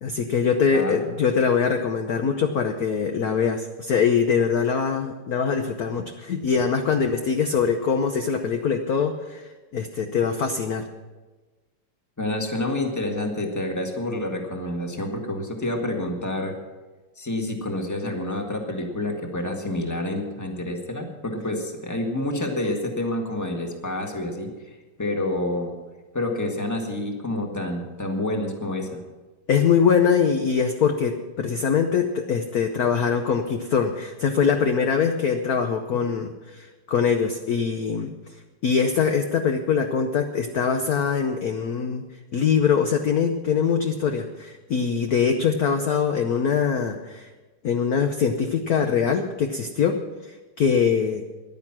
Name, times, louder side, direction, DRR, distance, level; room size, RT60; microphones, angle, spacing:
voice 1, 0.0-9.5 9.7-10.9 29.5-38.1 38.6-42.0 42.3-47.3 47.6-50.0 50.6-51.2, left 6 dB, 60° left, 5 dB, 1.0 m, -23 dB
voice 2, 12.2-16.5 17.2-24.5 25.0-25.7 26.1-29.0, left 1 dB, 10° left, 2 dB, 1.4 m, -28 dB
14.5 x 11.0 x 6.0 m, 1.2 s
omnidirectional pair, 2.4 m